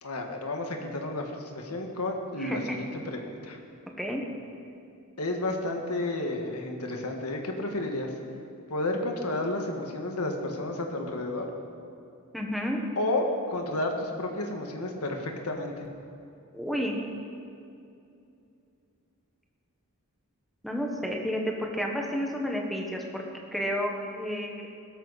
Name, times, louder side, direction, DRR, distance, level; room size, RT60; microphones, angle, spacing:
voice 1, 0.0-3.6 5.2-8.1 8.7-11.5 13.0-15.9, left 2 dB, 85° left, 2 dB, 1.7 m, -31 dB
voice 2, 2.4-2.8 4.0-4.2 12.3-12.8 16.5-17.0 20.6-23.2 23.5-24.7, equal, ahead, 0 dB, 1.3 m, -31 dB
17.0 x 13.0 x 4.2 m, 2.6 s
head